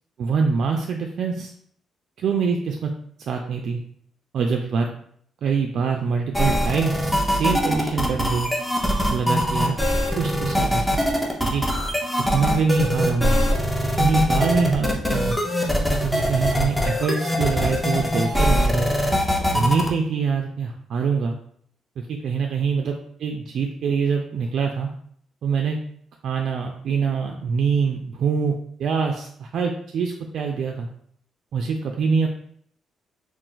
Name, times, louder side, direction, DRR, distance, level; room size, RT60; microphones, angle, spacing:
voice 1, 0.2-1.5 2.2-2.9 3.3-3.8 4.3-4.9 5.4-8.5 9.1-9.8 10.2-10.9 11.4-11.6 12.3-13.4 14.0-15.4 16.0-18.9 19.5-21.3 22.0-24.9 25.4-25.8 26.2-28.5 28.8-30.9 31.5-32.3, right 5 dB, 65° right, 2 dB, 0.3 m, -24 dB
sound 1, 6.3-19.9, equal, 5° left, 0.6 m, -22 dB
2.4 x 2.4 x 3.8 m, 0.64 s
cardioid pair, 90°, 0 cm